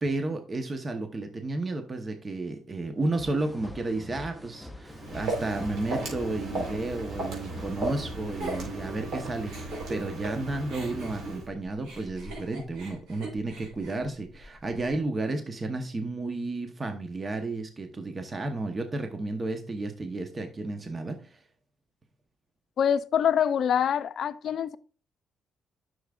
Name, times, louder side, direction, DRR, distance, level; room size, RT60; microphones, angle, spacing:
voice 1, 0.0-21.4, right 2 dB, 30° right, 0.9 m, -32 dB
sound 1, 3.2-8.9, left 1 dB, 5° left, 0.6 m, -45 dB
Walk footsteps, 4.9-11.5, right 2 dB, 70° right, 3.7 m, -35 dB
Giggle, 8.4-10.4 10.7-14.9, right 2 dB, 85° right, 4.3 m, -44 dB
voice 2, 22.8-24.8, left 8 dB, 65° left, 0.5 m, -25 dB
10.0 x 6.4 x 2.4 m
cardioid pair, 90°, 0 cm